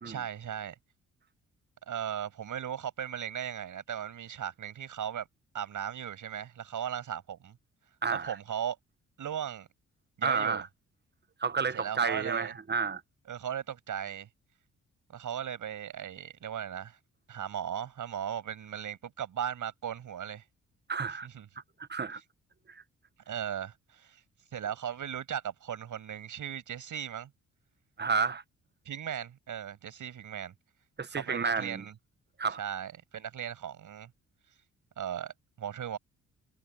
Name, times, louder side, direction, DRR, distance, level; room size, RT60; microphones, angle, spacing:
voice 1, 0.0-0.8 1.9-5.3 5.5-7.6 8.1-8.8 9.2-9.7 10.2-10.6 11.7-12.5 13.3-14.3 15.1-17.0 17.3-20.4 21.2-21.5 23.3-24.2 24.5-27.3 28.8-30.5 31.1-31.9 32.6-34.1 35.0-36.0, right 9 dB, 65° right, 6.7 m, -37 dB
voice 2, 8.0-8.4 10.2-10.7 11.4-13.0 20.9-21.3 21.8-22.2 22.7-22.8 28.0-28.4 31.0-31.8 32.4-32.6, right 5 dB, 30° right, 1.3 m, -31 dB
hypercardioid pair, 45°, 34 cm